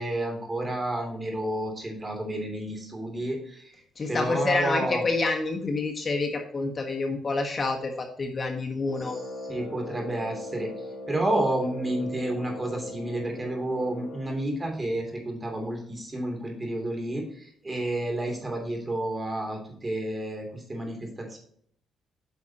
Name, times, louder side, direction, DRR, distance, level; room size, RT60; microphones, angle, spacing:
voice 1, 0.0-3.7 4.1-5.0 9.0-10.7 11.1-21.4, right 1 dB, 25° right, 3 dB, 3.0 m, -30 dB
voice 2, 4.0-9.1, left 3 dB, 35° left, 3 dB, 1.4 m, -28 dB
Brass instrument, 8.8-14.4, left 1 dB, 55° left, 2.9 m, -39 dB
9.3 x 6.1 x 2.9 m, 0.64 s
cardioid pair, 85°, 0 cm